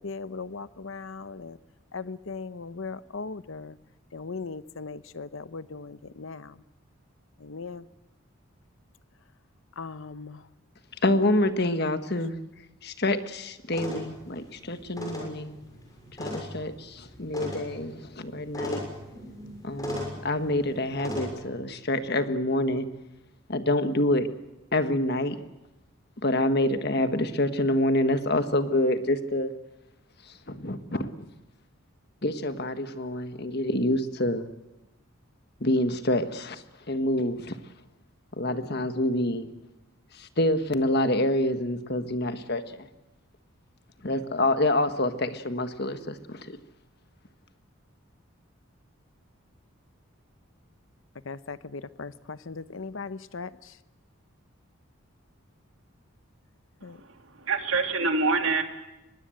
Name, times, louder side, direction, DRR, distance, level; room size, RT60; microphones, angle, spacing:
voice 1, 0.0-1.6 1.9-3.8 4.1-6.6 7.4-7.9 9.8-10.4 51.2-53.7 56.8-57.0, left 4 dB, 65° left, 15 dB, 0.8 m, -38 dB
voice 2, 11.0-12.3 12.8-15.6 16.2-18.8 19.6-22.9 23.5-24.3 24.7-25.4 26.2-29.5 30.5-31.2 32.2-34.5 35.6-37.6 38.4-39.5 40.2-42.9 44.0-46.6, left 1 dB, 50° left, 9 dB, 1.5 m, -27 dB
sound 1, 13.7-21.3, equal, 15° left, 6.7 m, -38 dB
voice 3, 56.8-58.6, right 4 dB, 70° right, 5 dB, 2.8 m, -26 dB
24.0 x 21.0 x 7.8 m, 0.99 s
head